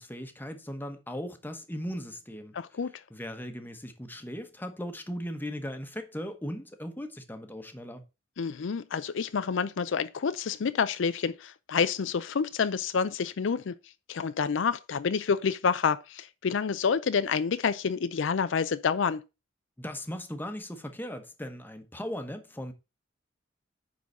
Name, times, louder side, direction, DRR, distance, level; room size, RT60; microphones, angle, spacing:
voice 1, 0.0-2.5 3.1-8.0 19.8-22.7, equal, 10° left, 1.0 m, -38 dB
voice 2, 2.5-3.0 8.4-13.8 14.1-19.2, left 6 dB, 70° left, 0.5 m, -28 dB
9.5 x 3.9 x 5.3 m
head